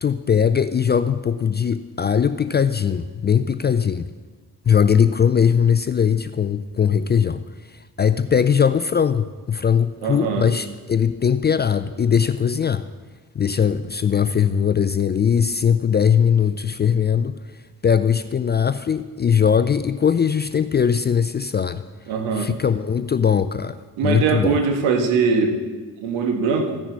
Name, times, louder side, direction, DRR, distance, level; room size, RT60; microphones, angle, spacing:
voice 1, 0.0-4.1 4.7-7.4 7.7-12.9 13.3-17.4 17.8-21.8 22.3-24.6, left 7 dB, 20° left, 12 dB, 0.4 m, -20 dB
voice 2, 10.0-10.4 22.1-22.5 24.0-25.6 26.0-26.8, right 5 dB, 70° right, 4 dB, 1.7 m, -21 dB
15.0 x 9.9 x 4.1 m, 1.3 s
figure-of-eight pair, 45°, 48 cm